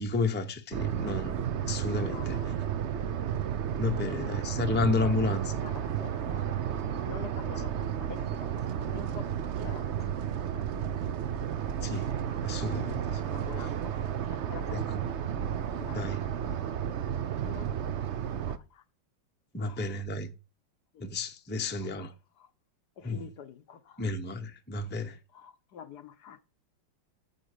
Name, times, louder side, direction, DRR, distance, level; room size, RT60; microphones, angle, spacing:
voice 1, 0.0-2.5 3.8-5.6 11.8-12.1 12.4-13.2 13.6-13.7 14.7-15.1 15.9-16.2 19.5-20.3 21.0-22.1 23.0-23.3 24.0-25.2, left 3 dB, 10° left, 0.7 m, -32 dB
sound 1, 0.7-18.6, right 9 dB, 65° right, 0.7 m, -32 dB
voice 2, 2.1-2.6 4.0-4.7 5.0-6.6 7.0-10.1 10.4-10.7 12.4-12.8 13.1-13.9 14.2-14.9 15.2-15.3 15.7-16.7 17.1-17.7 17.9-18.8 19.6-19.9 20.9-21.1 21.8-22.1 22.4-22.5 23.0-24.1 24.8-26.5, left 8 dB, 65° left, 1.2 m, -48 dB
12.5 x 4.5 x 6.8 m
omnidirectional pair, 2.0 m